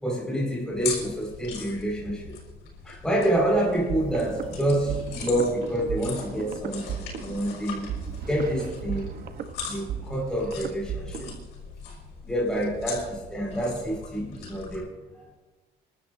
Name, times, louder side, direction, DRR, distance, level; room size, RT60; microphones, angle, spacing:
voice 1, 0.0-2.4 2.9-7.9 8.3-9.1 9.7-11.3 12.3-14.9 15.2-15.3, right 1 dB, 5° left, -4 dB, 5.2 m, -27 dB
sound 1, 0.7-14.8, left 6 dB, 85° left, 6.0 m, -40 dB
sound 2, 3.9-11.5, right 8 dB, 60° right, 1.1 m, -36 dB
27.0 x 12.5 x 2.7 m, 1.2 s
cardioid pair, 110°, 17 cm